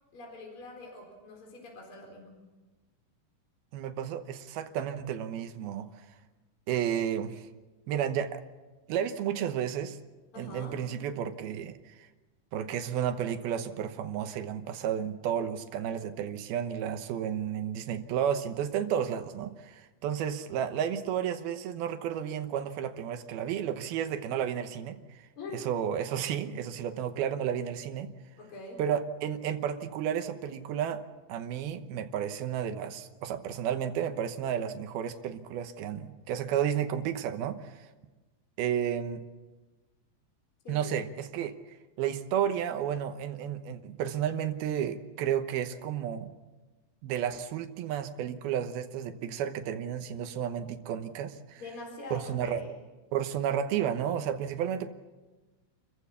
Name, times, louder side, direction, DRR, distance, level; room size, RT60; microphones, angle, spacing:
voice 1, 0.1-2.4 10.3-10.8 25.4-25.7 28.4-28.8 40.6-40.9 51.6-52.7, left 2 dB, 35° left, 0 dB, 4.8 m, -44 dB
voice 2, 3.7-5.9 6.7-7.5 7.9-8.4 8.9-10.0 10.4-12.1 12.5-25.0 25.5-28.1 28.8-31.0 31.3-37.9 38.6-39.2 40.7-41.6 42.0-46.3 47.0-51.6 52.1-52.6 53.1-54.9, right 9 dB, 75° right, 8 dB, 2.9 m, -32 dB
29.0 x 15.0 x 7.2 m, 1.2 s
omnidirectional pair, 4.5 m